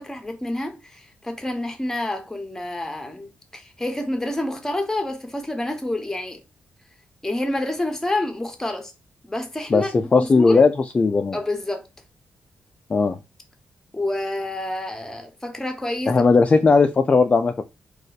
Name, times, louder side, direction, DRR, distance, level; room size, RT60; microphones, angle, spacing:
voice 1, 0.0-6.4 7.2-8.9 9.2-9.9 10.2-10.7 11.3-11.9 13.9-16.2, left 1 dB, 10° left, 1.0 m, -28 dB
voice 2, 9.7-11.4 12.9-13.2 16.1-17.6, left 4 dB, 35° left, 0.4 m, -17 dB
2.5 x 2.4 x 4.0 m
cardioid pair, 70°, 4 cm